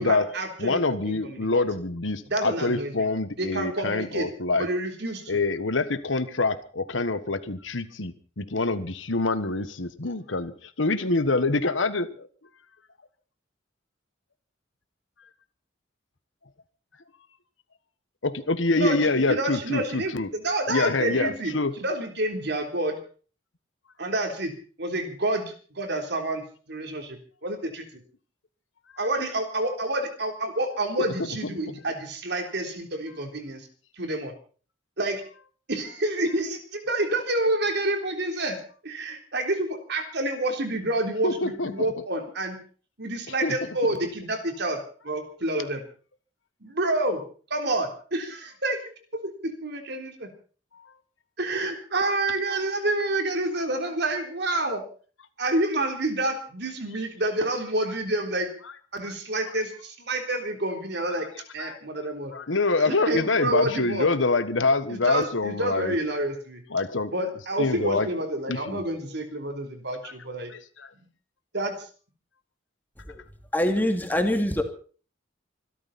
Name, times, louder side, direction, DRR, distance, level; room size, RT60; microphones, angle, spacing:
voice 1, 0.0-1.5 2.3-3.0 3.4-4.3 4.6-5.4 18.7-21.5 21.8-23.0 24.0-24.5 24.8-27.8 29.0-33.7 33.9-34.3 35.0-35.2 35.7-42.6 43.0-45.8 46.6-47.2 47.5-50.3 51.4-54.8 55.4-58.5 58.9-61.3 61.5-62.3 62.8-64.1 64.9-66.6 67.1-70.5 71.5-71.9, right 1 dB, 60° right, 4 dB, 3.7 m, -28 dB
voice 2, 0.6-4.7 5.3-12.3 18.2-20.3 20.7-21.7 41.2-41.7 43.4-43.6 61.6-61.8 62.3-65.9 66.7-67.1 67.6-68.1 68.5-68.8 70.0-70.1 70.5-70.6, left 3 dB, 85° left, 12 dB, 1.4 m, -25 dB
voice 3, 73.5-74.6, left 1 dB, 10° left, 5 dB, 2.6 m, -24 dB
25.0 x 13.0 x 4.3 m, 0.41 s
head